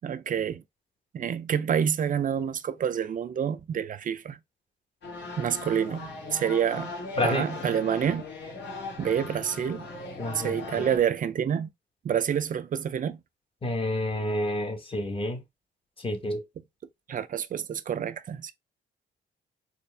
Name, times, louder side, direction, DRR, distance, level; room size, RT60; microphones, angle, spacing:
voice 1, 0.0-0.6 1.1-4.4 5.4-6.9 7.2-8.3 9.0-9.9 10.3-11.7 12.0-13.2 17.1-18.5, right 8 dB, 40° right, 0.5 m, -28 dB
sound 1, 5.0-11.0, left 3 dB, 60° left, 1.5 m, -39 dB
voice 2, 7.2-7.5 10.2-10.9 13.6-15.4 16.0-16.4, left 1 dB, 25° left, 1.2 m, -29 dB
4.3 x 2.5 x 3.4 m
cardioid pair, 90°, 20 cm